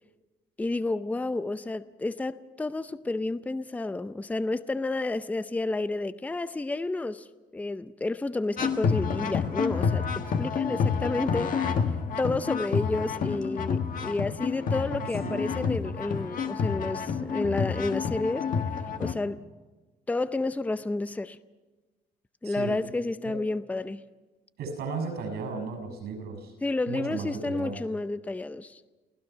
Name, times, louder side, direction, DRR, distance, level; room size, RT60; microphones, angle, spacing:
voice 1, 0.6-7.3 7.5-11.7 12.2-18.5 19.0-19.4 20.1-21.4 22.4-24.0 26.6-28.8, left 2 dB, 10° left, 0.6 m, -30 dB
sound 1, 8.6-19.1, left 6 dB, 55° left, 1.6 m, -29 dB
voice 2, 10.6-10.9 15.2-15.5 22.4-22.8 23.2-23.3 24.6-26.5 26.9-27.8, right 4 dB, 75° right, 6.5 m, -35 dB
28.5 x 16.0 x 5.7 m
cardioid pair, 110°, 17 cm